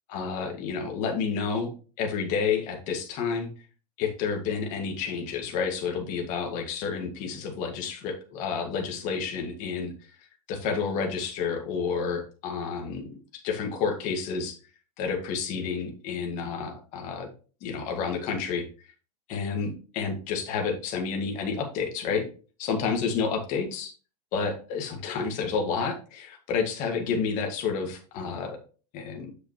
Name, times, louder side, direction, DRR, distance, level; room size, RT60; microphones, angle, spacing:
voice 1, 0.1-1.7 2.0-3.5 4.0-9.9 10.5-14.6 15.0-17.3 17.6-18.7 19.3-22.3 22.6-23.9 24.3-28.6 28.9-29.3, left 5 dB, 35° left, 3 dB, 1.9 m, -30 dB
8.0 x 6.3 x 3.1 m, 0.37 s
supercardioid pair, 165°, 21 cm